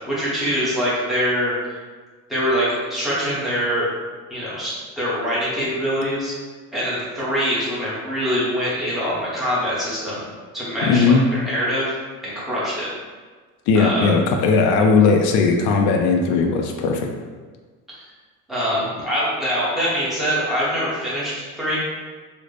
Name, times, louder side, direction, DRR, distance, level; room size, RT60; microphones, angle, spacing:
voice 1, 0.1-1.8 2.3-3.9 4.3-6.3 6.7-10.3 10.5-11.9 12.2-12.9 13.7-14.1 18.5-21.8, equal, ahead, -9 dB, 0.8 m, -24 dB
voice 2, 10.8-11.2 13.7-17.1, left 4 dB, 65° left, 2 dB, 0.4 m, -17 dB
3.9 x 2.1 x 3.2 m, 1.4 s
cardioid pair, 175°, 32 cm